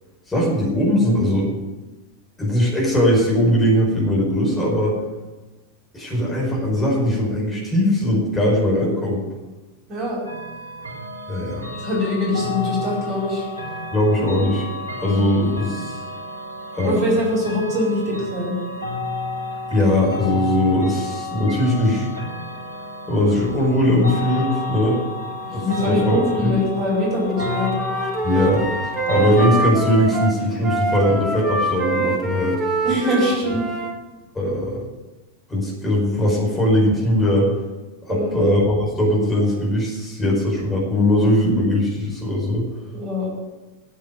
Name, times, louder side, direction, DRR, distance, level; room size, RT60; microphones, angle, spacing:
voice 1, 0.3-1.5 2.4-5.0 5.9-9.2 11.3-11.6 13.9-14.7 15.0-16.0 16.7-16.9 19.7-22.1 23.1-25.0 25.5-26.5 28.2-32.6 34.3-34.8 35.5-37.5 38.0-42.7, left 1 dB, 15° left, -4 dB, 5.1 m, -20 dB
voice 2, 9.9-10.2 11.7-13.4 15.0-15.2 16.8-18.6 25.4-27.7 32.8-33.6 38.1-38.5 42.9-43.3, left 1 dB, 35° right, -3 dB, 5.0 m, -23 dB
sound 1, 10.2-29.5, left 2 dB, 75° right, 3.1 m, -31 dB
Wind instrument woodwind instrument, 27.3-33.9, right 2 dB, 15° right, 2.2 m, -25 dB
9.7 x 8.5 x 9.4 m, 1.1 s
figure-of-eight pair, 90°, 0 cm